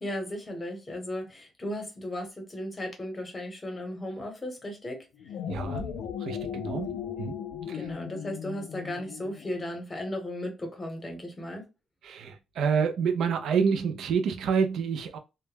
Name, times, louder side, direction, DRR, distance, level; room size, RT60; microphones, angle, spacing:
voice 1, 0.0-5.1 7.7-11.6, left 1 dB, 20° left, 0.9 m, -36 dB
ticklish-wave, 5.1-9.7, left 8 dB, 85° left, 0.3 m, -37 dB
voice 2, 5.5-5.9 6.2-7.4 7.7-7.9 12.0-15.2, right 6 dB, 75° right, 0.4 m, -28 dB
2.1 x 2.0 x 3.2 m
cardioid pair, 120°, 0 cm